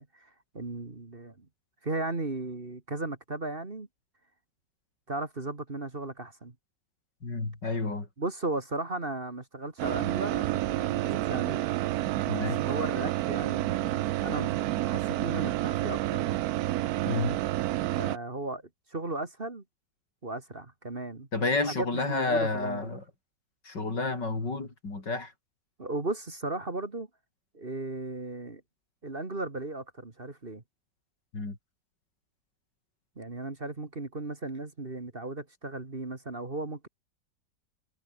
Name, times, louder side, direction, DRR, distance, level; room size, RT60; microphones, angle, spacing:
voice 1, 0.0-1.5 1.8-3.9 5.1-6.5 7.6-7.8 8.2-11.6 12.4-14.6 14.8-16.4 18.0-18.6 18.9-19.6 20.2-21.3 21.5-23.0 25.8-27.1 27.5-28.6 29.0-30.6 33.2-36.9, right 2 dB, 30° right, 2.4 m, -36 dB
voice 2, 7.2-8.1 12.3-12.6 17.1-17.4 21.3-23.0 23.7-25.3 31.3-31.6, left 3 dB, 75° left, 5.5 m, -30 dB
sound 1, 9.8-18.2, right 15 dB, 70° right, 0.9 m, -29 dB
omnidirectional pair, 1.9 m